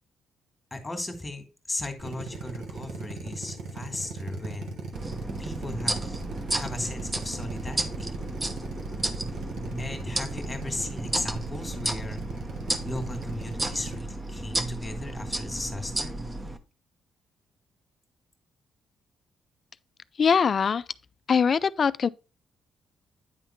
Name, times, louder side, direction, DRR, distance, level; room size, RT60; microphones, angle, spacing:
voice 1, 0.7-4.8 5.4-6.0 6.5-8.2 9.8-12.2 12.8-16.2, left 1 dB, 10° left, 2.0 m, -36 dB
Drill, 2.0-14.0, right 4 dB, 75° right, 1.2 m, -38 dB
sound 1, 4.9-16.6, right 1 dB, 20° right, 0.9 m, -33 dB
voice 2, 20.2-20.9 21.3-22.1, left 6 dB, 45° left, 0.3 m, -22 dB
9.4 x 3.6 x 4.3 m
cardioid pair, 90°, 0 cm